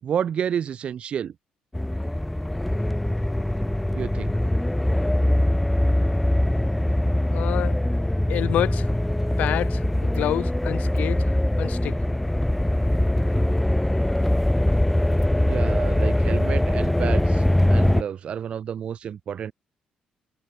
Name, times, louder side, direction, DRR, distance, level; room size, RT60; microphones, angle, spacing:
voice 1, 0.0-1.3 3.9-4.3 15.4-17.4 17.7-19.5, right 8 dB, 45° right, 7.1 m, -30 dB
sound 1, 1.7-18.0, left 1 dB, 5° left, 0.7 m, -22 dB
voice 2, 7.3-7.8 8.3-8.9 9.4-11.2 11.6-12.0, left 12 dB, 70° left, 5.7 m, -27 dB
cardioid pair, 155°, 3 cm